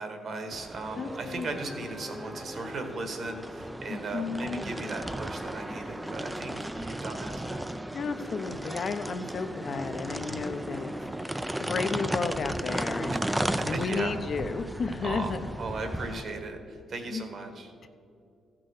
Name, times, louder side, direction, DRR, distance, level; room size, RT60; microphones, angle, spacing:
voice 1, 0.0-7.6 13.1-13.2 13.7-14.1 15.0-17.7, right 3 dB, 50° right, 6 dB, 1.6 m, -37 dB
sound 1, 0.5-16.2, right 1 dB, 10° right, 0.4 m, -35 dB
voice 2, 1.0-1.8 3.9-4.6 7.9-13.2 13.6-15.4 17.1-17.2 17.8-17.9, left 5 dB, 50° left, 10 dB, 0.7 m, -33 dB
15.0 x 6.1 x 4.9 m, 2.5 s
cardioid pair, 90°, 0 cm